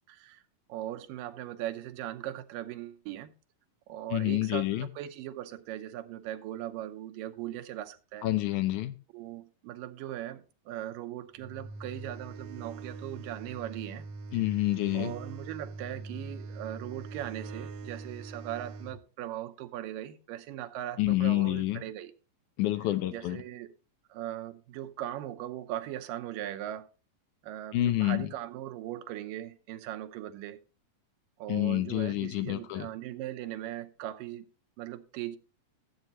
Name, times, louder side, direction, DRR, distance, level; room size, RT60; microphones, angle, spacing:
voice 1, 0.1-0.4 0.7-3.3 3.9-8.3 9.1-14.1 14.9-22.1 23.1-23.7 24.1-26.9 27.4-30.6 31.4-34.5 34.8-35.4, right 13 dB, 85° right, 2.4 m, -39 dB
voice 2, 4.1-4.9 8.2-9.0 14.3-15.1 21.0-21.8 22.6-23.4 27.7-28.3 31.5-32.9, left 16 dB, 75° left, 2.0 m, -28 dB
sound 1, 11.4-19.0, right 3 dB, 70° right, 2.0 m, -43 dB
14.5 x 8.0 x 3.0 m
omnidirectional pair, 3.9 m